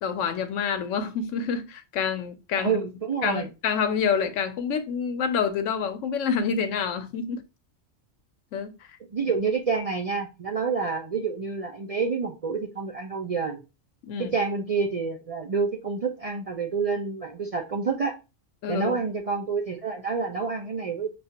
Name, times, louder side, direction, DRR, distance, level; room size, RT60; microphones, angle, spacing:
voice 1, 0.0-2.7 3.2-7.4 8.5-8.7 9.2-9.3 14.1-14.4 18.6-19.0, left 6 dB, 85° left, 1.0 m, -27 dB
voice 2, 2.6-3.5 9.1-13.6 14.2-18.2 18.7-21.1, right 5 dB, 50° right, 0.4 m, -28 dB
6.8 x 2.4 x 2.8 m
omnidirectional pair, 1.2 m